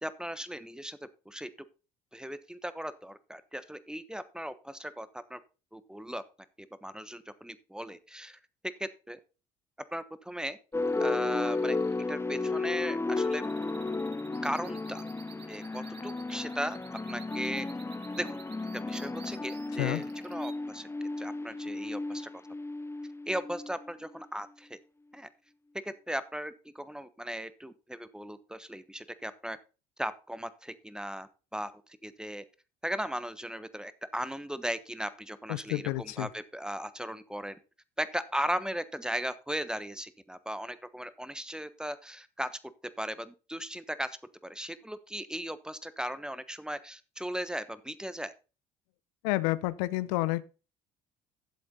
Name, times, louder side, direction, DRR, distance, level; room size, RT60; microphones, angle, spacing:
voice 1, 0.0-1.0 1.2-1.5 2.1-5.4 5.7-6.2 6.8-8.4 8.8-9.2 9.9-10.6 11.0-11.8 12.1-13.5 14.4-15.0 15.5-17.7 18.2-18.4 18.7-20.9 21.2-22.3 23.3-24.8 25.1-25.3 25.8-29.6 30.0-32.4 32.8-37.6 38.0-42.5 43.0-44.2 44.4-48.3, equal, 5° right, 1.2 m, -37 dB
sound 1, 10.7-24.1, left 3 dB, 15° left, 0.8 m, -34 dB
sound 2, 10.8-20.5, right 8 dB, 65° right, 2.1 m, -54 dB
voice 2, 35.5-36.3 49.2-50.4, left 19 dB, 80° left, 0.6 m, -30 dB
11.5 x 7.6 x 4.0 m
hypercardioid pair, 60°, 19 cm